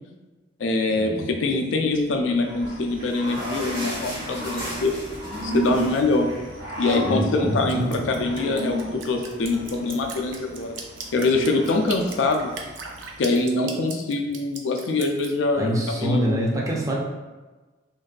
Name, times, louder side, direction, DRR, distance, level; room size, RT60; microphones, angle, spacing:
voice 1, 0.6-5.0 5.4-6.3 6.8-10.8 11.1-12.5 13.2-16.3, left 3 dB, 90° left, 3 dB, 0.4 m, -24 dB
Growling / Cricket, 2.4-13.3, right 1 dB, 65° right, 1.3 m, -34 dB
sound 1, 2.5-7.3 7.6-7.7 8.0-8.2 8.9-9.0, equal, 50° right, 1.0 m, -37 dB
voice 2, 7.0-8.3 15.6-17.0, equal, 15° right, -3 dB, 0.4 m, -25 dB
Drip, 7.7-15.3, right 5 dB, 90° right, 0.4 m, -38 dB
2.6 x 2.2 x 2.3 m, 1.2 s
head